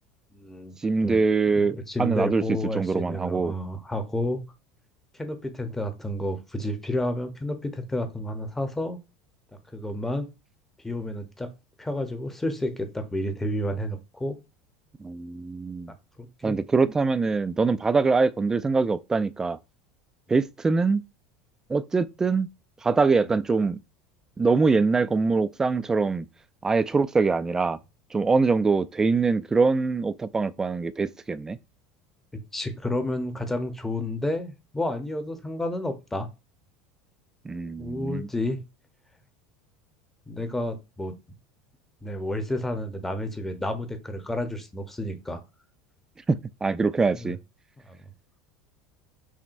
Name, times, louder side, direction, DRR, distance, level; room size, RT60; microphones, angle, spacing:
voice 1, 0.3-0.7 1.0-1.2 1.5-4.4 5.2-9.0 9.7-10.3 10.8-11.5 11.8-14.4 16.2-16.6 23.2-23.4 32.3-36.3 37.8-38.6 40.3-41.2 42.0-45.4 47.2-47.3 47.8-48.0, left 1 dB, 10° left, 0.8 m, -30 dB
voice 2, 0.8-3.5 15.0-15.9 16.4-19.6 20.3-21.0 21.7-22.5 22.8-23.8 24.4-26.3 26.6-27.8 28.1-31.6 37.4-38.3 46.3-47.4, right 4 dB, 15° right, 0.3 m, -23 dB
5.9 x 2.1 x 2.6 m
hypercardioid pair, 95°, 3 cm